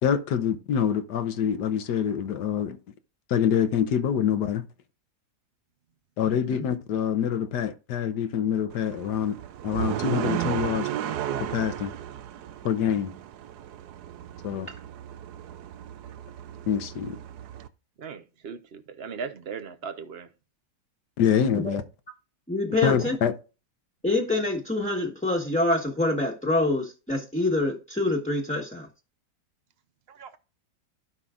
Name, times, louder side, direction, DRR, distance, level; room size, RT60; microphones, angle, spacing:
voice 1, 0.0-2.8 3.3-4.6 6.2-9.4 9.6-10.9 11.5-11.9 12.6-13.1 14.4-14.7 16.7-17.2 21.2-21.8 22.8-23.3, left 8 dB, 75° left, 1.4 m, -25 dB
sound 1, 8.7-17.7, right 10 dB, 70° right, 1.1 m, -34 dB
voice 2, 18.0-20.3 30.1-30.4, right 6 dB, 45° right, 0.8 m, -38 dB
voice 3, 22.5-23.2 24.0-28.9, left 2 dB, 5° left, 1.2 m, -26 dB
15.5 x 5.6 x 2.5 m
omnidirectional pair, 1.8 m